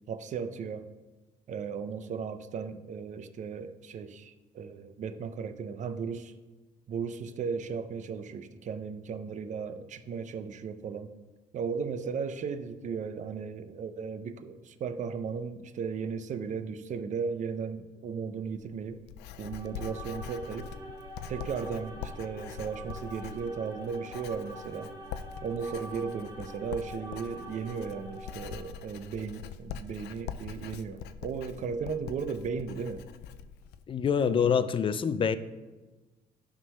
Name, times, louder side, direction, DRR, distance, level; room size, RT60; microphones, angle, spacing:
voice 1, 0.1-0.9 1.5-6.3 6.9-11.1 11.5-19.0 19.4-20.7 21.3-24.9 25.4-33.0 34.3-34.7, right 6 dB, 45° right, 11 dB, 0.6 m, -36 dB
Writing, 18.4-33.8, left 8 dB, 85° left, 0.5 m, -44 dB
sound 1, 19.3-28.8, right 1 dB, 25° right, 1.6 m, -46 dB
voice 2, 33.9-35.4, left 7 dB, 30° left, 13 dB, 0.5 m, -26 dB
11.5 x 3.8 x 5.5 m, 1.2 s
cardioid pair, 110°, 17 cm